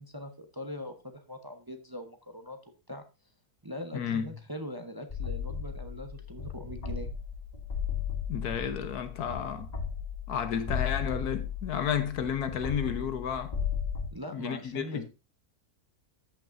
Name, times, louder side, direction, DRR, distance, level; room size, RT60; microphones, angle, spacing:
voice 1, 0.0-2.6 2.9-3.0 3.6-7.1 14.1-15.0, equal, 20° right, 0.8 m, -41 dB
voice 2, 3.9-4.3 8.3-9.7 10.3-13.6 14.3-15.0, left 8 dB, 80° left, 1.6 m, -32 dB
sound 1, 5.1-14.1, left 7 dB, 30° left, 1.2 m, -35 dB
14.0 x 6.0 x 2.6 m
omnidirectional pair, 1.6 m